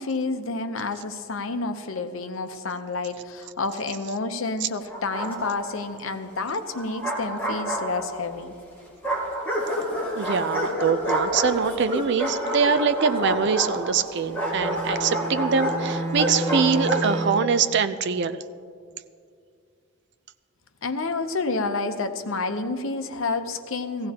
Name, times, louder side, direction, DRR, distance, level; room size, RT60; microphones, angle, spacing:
voice 1, 0.0-8.5 20.8-24.1, left 3 dB, 75° left, 8 dB, 0.8 m, -29 dB
Bark, 4.9-5.8 6.7-8.3 9.0-17.1, equal, 10° left, 2.8 m, -28 dB
voice 2, 10.2-18.4, right 6 dB, 55° right, 11 dB, 0.5 m, -23 dB
Bowed string instrument, 14.2-17.6, right 2 dB, 35° right, 3.2 m, -31 dB
17.0 x 15.5 x 2.9 m, 2.3 s
head